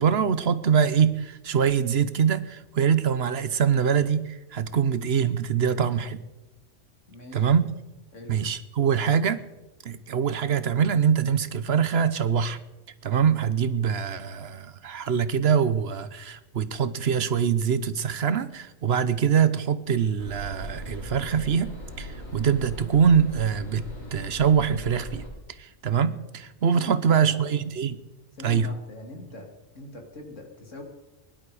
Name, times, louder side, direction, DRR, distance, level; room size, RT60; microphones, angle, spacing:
voice 1, 0.0-6.2 7.3-7.7 8.3-9.4 9.8-12.6 13.0-21.7 22.0-23.8 24.1-25.2 25.6-28.0 28.4-28.7, right 7 dB, 55° right, 14 dB, 1.0 m, -24 dB
voice 2, 7.1-7.5 8.1-8.4 26.7-27.4 28.4-30.8, left 1 dB, 70° left, 2 dB, 2.8 m, -42 dB
sound 1, 20.2-25.3, equal, 90° left, 7.2 m, -39 dB
21.5 x 11.0 x 4.9 m, 1.0 s
omnidirectional pair, 1.3 m